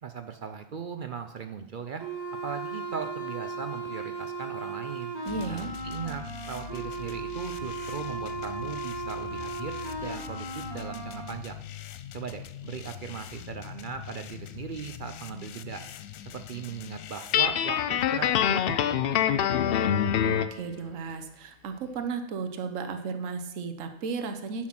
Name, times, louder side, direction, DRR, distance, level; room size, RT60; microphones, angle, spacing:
voice 1, 0.0-2.0 2.4-5.1 5.5-11.6 12.1-15.8 16.3-19.3, right 6 dB, 55° right, 8 dB, 0.6 m, -38 dB
sound 1, 2.0-11.3, right 3 dB, 20° right, 1.4 m, -36 dB
sound 2, 5.3-17.4, left 12 dB, 85° left, 1.0 m, -43 dB
voice 2, 5.3-5.7 20.3-24.7, right 5 dB, 75° right, 7 dB, 1.2 m, -34 dB
Guitar, 17.3-20.6, left 9 dB, 65° left, 0.6 m, -25 dB
9.7 x 6.2 x 5.9 m, 0.85 s
omnidirectional pair, 1.4 m